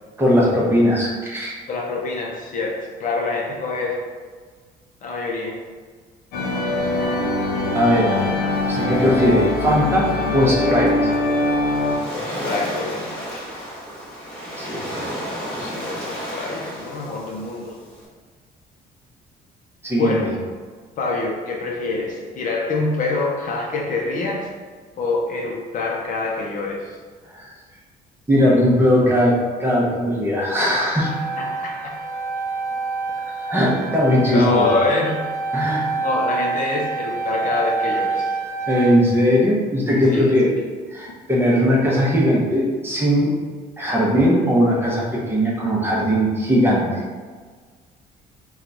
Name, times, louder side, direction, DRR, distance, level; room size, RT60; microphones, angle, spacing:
voice 1, 0.2-1.5 7.7-8.2 8.7-10.1 10.3-11.1 14.6-15.2 19.8-20.3 27.4-27.5 28.3-29.3 29.6-31.1 33.4-34.7 35.5-35.9 38.7-40.5 40.9-43.4 43.8-46.9, equal, 15° right, -4 dB, 0.8 m, -19 dB
voice 2, 1.7-4.0 5.0-5.6 12.1-13.4 15.6-17.8 20.0-20.3 21.0-24.5 25.0-27.0 31.4-32.0 34.3-35.2 35.9-38.3 40.1-40.3, left 3 dB, 50° left, -1 dB, 0.6 m, -25 dB
sound 1, 6.3-12.0, left 2 dB, 90° left, 0.7 m, -22 dB
Waves surf, 11.2-18.0, equal, 5° left, 1.2 m, -33 dB
sound 2, 31.0-38.9, right 4 dB, 45° right, 0.7 m, -27 dB
2.9 x 2.3 x 3.9 m, 1.5 s
cardioid pair, 110°, 17 cm